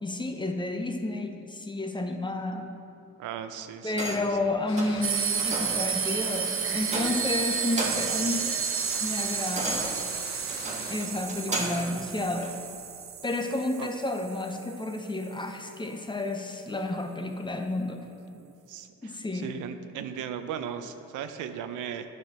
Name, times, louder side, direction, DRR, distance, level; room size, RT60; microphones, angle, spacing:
voice 1, 0.0-2.7 3.8-8.6 9.0-9.9 10.9-12.6 13.2-18.1 19.0-19.6, left 2 dB, 15° left, 5 dB, 0.7 m, -31 dB
voice 2, 3.2-4.1 11.5-11.6 13.8-13.9 18.3-22.0, right 8 dB, 85° right, 9 dB, 0.6 m, -37 dB
sound 1, 3.9-4.4 4.7-5.0 5.4-5.8 6.2-6.4 6.8-7.3 7.6-8.2 8.6-11.9 12.4-12.6, right 2 dB, 25° right, 1.4 m, -34 dB
sound 2, 4.7-10.9, left 4 dB, 65° left, 1.0 m, -43 dB
sound 3, 5.0-14.8, right 7 dB, 45° right, 0.7 m, -31 dB
9.6 x 5.7 x 4.3 m, 2.8 s
cardioid pair, 90°, 30 cm